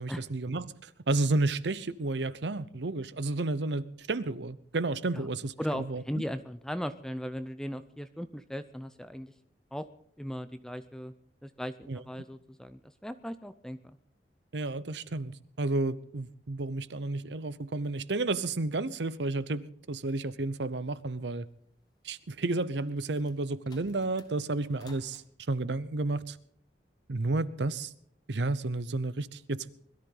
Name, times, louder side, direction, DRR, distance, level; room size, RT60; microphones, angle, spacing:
voice 1, 0.0-6.0 11.9-12.0 14.5-21.5 22.0-25.2 25.5-26.4 27.1-27.9 28.3-29.7, right 2 dB, 75° right, 0.8 m, -31 dB
voice 2, 5.6-9.3 9.7-9.9 10.2-11.1 11.4-13.8, equal, 5° left, 0.6 m, -37 dB
sound 1, 22.3-25.3, left 3 dB, 25° left, 1.5 m, -58 dB
21.0 x 13.5 x 3.9 m
head